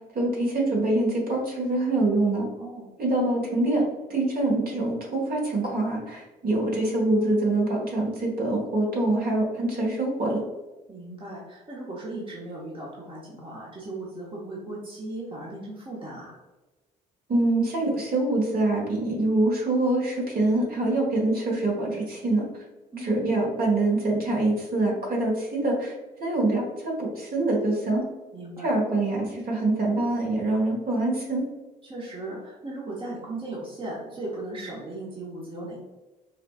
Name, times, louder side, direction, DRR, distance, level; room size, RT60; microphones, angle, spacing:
voice 1, 0.1-2.5 3.0-3.8 4.1-10.4 17.3-22.5 23.0-25.9 26.2-28.0 28.6-31.4, right 2 dB, 45° right, -2 dB, 1.5 m, -25 dB
voice 2, 2.6-3.0 10.9-16.4 22.9-23.3 28.3-28.7 31.8-35.8, right 2 dB, 25° right, -5 dB, 1.1 m, -37 dB
5.0 x 2.3 x 2.4 m, 1.1 s
hypercardioid pair, 50°, 21 cm